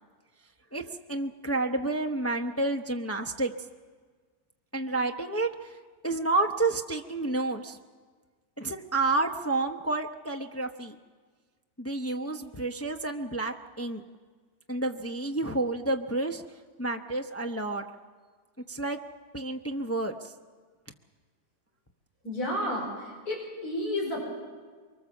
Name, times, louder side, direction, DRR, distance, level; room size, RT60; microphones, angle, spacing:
voice 1, 1.1-3.5 4.7-5.5 6.0-7.8 8.6-10.9 11.8-14.0 14.7-16.4 16.8-17.8 18.7-19.0 19.3-20.3, right 2 dB, 15° left, 4 dB, 0.6 m, -30 dB
voice 2, 22.2-24.2, left 1 dB, 85° left, -1 dB, 5.1 m, -31 dB
24.0 x 23.5 x 7.2 m, 1.5 s
omnidirectional pair, 1.6 m